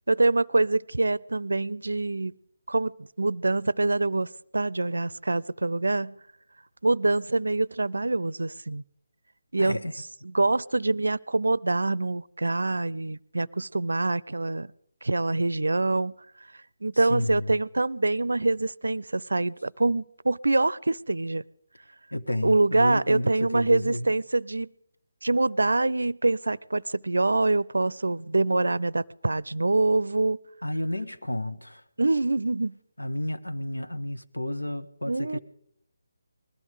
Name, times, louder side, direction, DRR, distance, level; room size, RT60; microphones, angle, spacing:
voice 1, 0.1-2.3 2.7-6.2 6.8-8.8 9.5-9.8 10.2-14.7 15.0-16.1 16.8-21.5 22.4-24.7 25.2-30.4 32.0-32.8 35.1-35.4, right 2 dB, 75° right, 23 dB, 0.5 m, -25 dB
voice 2, 9.6-9.9 16.9-17.6 22.1-24.1 30.6-31.8 33.0-35.4, left 1 dB, 90° left, 8 dB, 1.3 m, -31 dB
20.5 x 14.0 x 5.0 m, 0.70 s
figure-of-eight pair, 150°, 0 cm